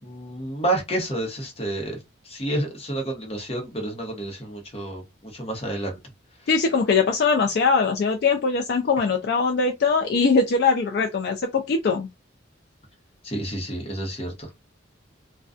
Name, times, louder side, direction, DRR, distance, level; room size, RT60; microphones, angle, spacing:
voice 1, 0.0-2.0 2.2-5.0 5.3-6.0 13.2-14.5, right 1 dB, 30° left, 0.8 m, -29 dB
voice 2, 6.5-12.1, left 4 dB, 55° left, 0.4 m, -21 dB
2.4 x 2.2 x 2.4 m
head